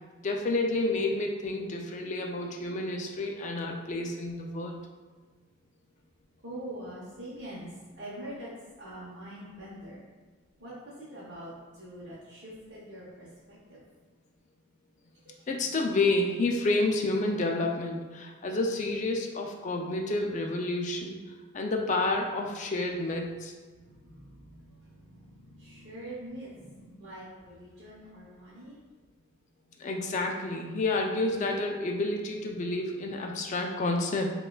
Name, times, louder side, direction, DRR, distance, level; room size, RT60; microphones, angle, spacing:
voice 1, 0.2-4.8 15.5-21.2 21.5-23.5 29.8-34.3, left 2 dB, 35° left, 2 dB, 0.3 m, -29 dB
voice 2, 6.4-7.7 8.0-8.5 8.8-10.0 10.6-10.7 11.0-13.8 23.7-28.8, right 1 dB, 50° right, -9 dB, 0.8 m, -44 dB
5.3 x 2.3 x 2.2 m, 1.4 s
head